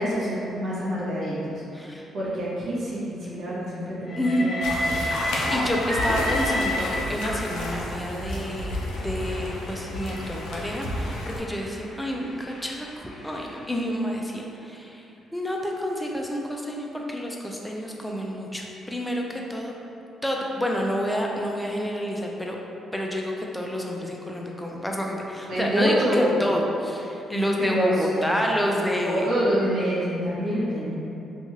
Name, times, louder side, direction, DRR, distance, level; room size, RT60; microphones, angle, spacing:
voice 1, 0.0-1.6 2.1-5.0 25.5-26.3 27.6-28.4 29.0-30.9, equal, 70° right, -7 dB, 0.6 m, -26 dB
voice 2, 1.7-2.1 4.2-4.5 5.5-8.8 9.0-15.0 15.3-19.7 20.2-22.6 22.9-29.3, equal, 5° left, -1 dB, 0.4 m, -29 dB
Train, 4.1-7.5 8.3-13.6, left 1 dB, 45° left, 1.2 m, -32 dB
sound 1, 4.6-11.4, left 1 dB, 85° left, 0.4 m, -31 dB
2.7 x 2.3 x 2.9 m, 2.7 s
cardioid pair, 90°, 0 cm